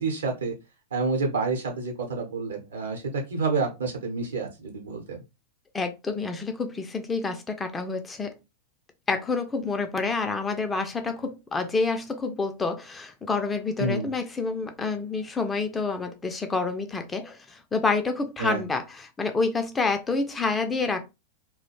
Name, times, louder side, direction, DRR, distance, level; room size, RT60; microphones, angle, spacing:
voice 1, 0.0-0.5 0.9-5.2 13.8-14.1 18.4-18.6, right 3 dB, 70° right, 0.8 m, -28 dB
voice 2, 5.7-8.3 9.1-21.1, left 4 dB, 15° left, 0.3 m, -28 dB
2.4 x 2.1 x 2.9 m
figure-of-eight pair, 90°, 0 cm